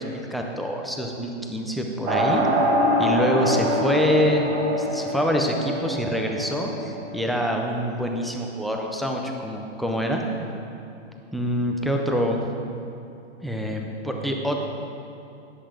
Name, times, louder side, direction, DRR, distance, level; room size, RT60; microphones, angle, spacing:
voice 1, 0.0-2.4 3.0-10.3 11.3-12.4 13.4-14.6, equal, ahead, 1 dB, 0.4 m, -25 dB
sound 1, 2.1-7.2, equal, 30° right, 2.0 m, -24 dB
13.5 x 10.0 x 5.0 m, 2.8 s
hypercardioid pair, 140°, 36 cm